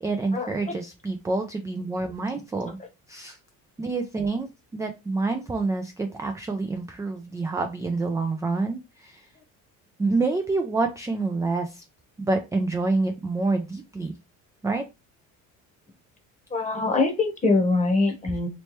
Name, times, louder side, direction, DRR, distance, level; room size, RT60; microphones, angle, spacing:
voice 1, 0.0-2.8 3.1-3.4 3.8-9.3 10.0-11.8 12.2-14.1 14.6-14.8 18.3-18.4, right 3 dB, 10° right, 5 dB, 0.3 m, -27 dB
voice 2, 16.5-18.5, left 3 dB, 20° left, 4 dB, 0.9 m, -23 dB
3.1 x 3.1 x 3.0 m, 0.26 s
cardioid pair, 120°, 33 cm